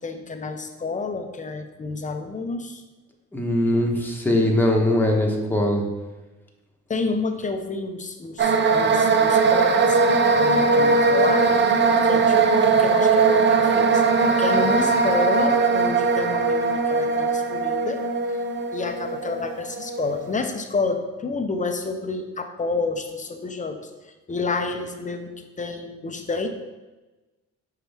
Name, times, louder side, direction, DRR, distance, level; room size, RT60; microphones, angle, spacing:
voice 1, 0.0-2.8 6.9-10.0 10.3-11.6 12.0-14.0 14.4-18.0 18.3-18.4 18.7-26.5, left 4 dB, 25° left, 6 dB, 0.7 m, -29 dB
voice 2, 3.3-5.8, left 1 dB, 5° left, 0 dB, 1.2 m, -21 dB
sound 1, 8.4-20.3, right 4 dB, 35° right, 0.6 m, -20 dB
6.1 x 4.6 x 3.5 m, 1.1 s
cardioid pair, 90°, 30 cm